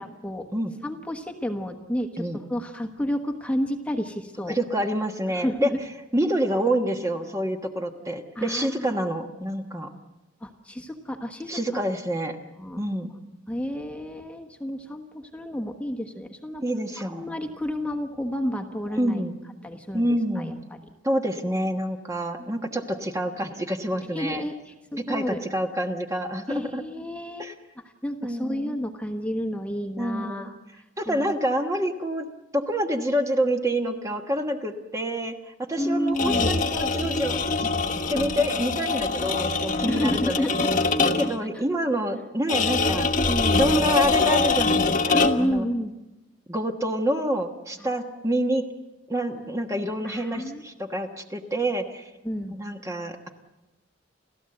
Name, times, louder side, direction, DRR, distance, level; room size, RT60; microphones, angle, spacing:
voice 1, 0.0-0.5 0.8-2.1 2.5-4.6 5.3-5.8 8.3-8.9 10.4-11.6 12.6-12.8 13.5-16.6 17.0-19.2 19.6-20.6 22.4-22.5 24.1-25.4 26.5-27.5 28.0-30.5 31.1-31.3 35.8-36.5 39.8-40.7 41.0-41.3 43.1-43.8 45.1-45.9 47.8-47.9 50.0-50.6 52.2-52.6, equal, 5° left, 4 dB, 1.3 m, -30 dB
voice 2, 4.5-5.7 6.1-9.9 11.5-12.4 12.8-13.1 16.6-17.4 19.0-19.4 19.9-20.5 21.0-24.4 25.0-26.8 27.4-27.5 28.2-28.8 30.0-30.5 31.0-32.3 32.5-40.5 41.2-43.1 43.5-45.7 46.5-48.7 49.1-52.1 52.5-53.3, right 1 dB, 15° right, 4 dB, 1.3 m, -27 dB
sound 1, 36.1-41.4 42.5-45.6, left 3 dB, 40° left, 1.4 m, -24 dB
30.0 x 13.5 x 7.8 m, 1.1 s
head